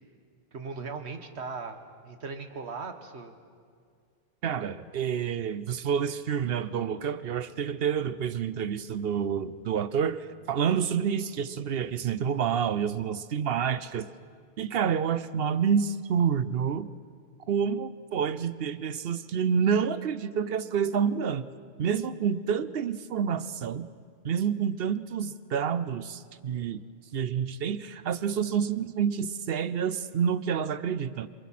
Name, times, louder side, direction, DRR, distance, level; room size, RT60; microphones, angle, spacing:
voice 1, 0.5-3.3, right 4 dB, 85° right, 7 dB, 1.6 m, -38 dB
voice 2, 4.4-14.1 14.6-16.9 17.5-21.5 21.8-23.9 24.2-26.8 27.1-31.3, right 7 dB, 65° right, 14 dB, 0.8 m, -28 dB
28.0 x 22.5 x 4.2 m, 2.2 s
omnidirectional pair, 1.1 m